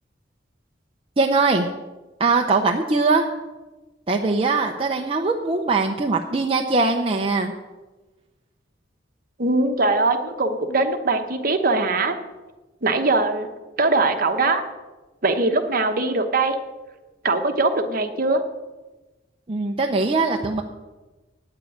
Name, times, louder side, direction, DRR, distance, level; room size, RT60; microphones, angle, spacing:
voice 1, 1.2-1.7 2.2-3.3 4.1-7.5 19.5-20.6, right 3 dB, 30° right, 2 dB, 0.7 m, -21 dB
voice 2, 9.4-12.2 12.8-13.5 13.8-14.6 15.2-16.6 17.2-18.4, right 3 dB, 50° right, 6 dB, 1.1 m, -21 dB
9.6 x 7.6 x 8.6 m, 1.2 s
head